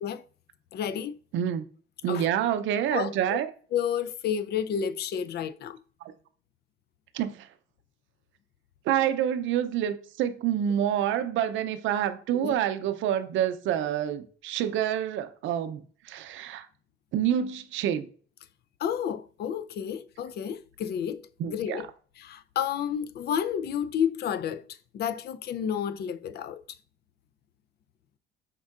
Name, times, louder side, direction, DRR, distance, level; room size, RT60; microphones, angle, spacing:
voice 1, 0.7-1.2 2.1-2.3 2.9-3.4 3.7-5.8 12.3-12.6 18.8-21.9 22.2-24.7 24.9-26.6, left 8 dB, 55° left, 0.4 m, -31 dB
voice 2, 1.3-1.6 2.0-3.5 6.0-6.1 7.1-7.5 8.9-16.7 17.1-18.1 21.4-21.8, right 10 dB, 70° right, 0.5 m, -27 dB
5.3 x 3.6 x 2.4 m
cardioid pair, 95°, 20 cm